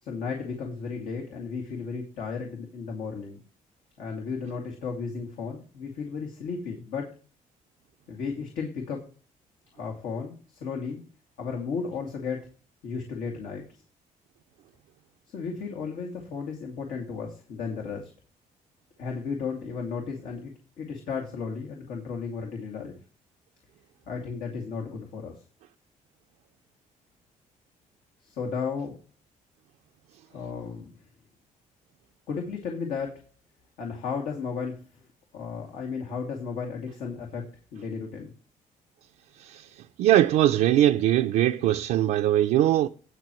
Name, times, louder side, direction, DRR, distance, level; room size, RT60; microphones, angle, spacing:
voice 1, 0.0-3.4 4.0-7.1 8.1-9.0 9.7-11.0 11.4-12.5 12.8-13.8 15.3-18.1 19.0-23.0 24.1-25.4 28.2-29.0 30.3-30.9 32.3-33.2 33.8-34.8 35.3-37.4 37.7-38.3, left 5 dB, 90° left, 2.3 m, -34 dB
voice 2, 40.0-42.9, right 13 dB, 85° right, 0.5 m, -21 dB
18.0 x 6.2 x 3.1 m
cardioid pair, 130°, 14 cm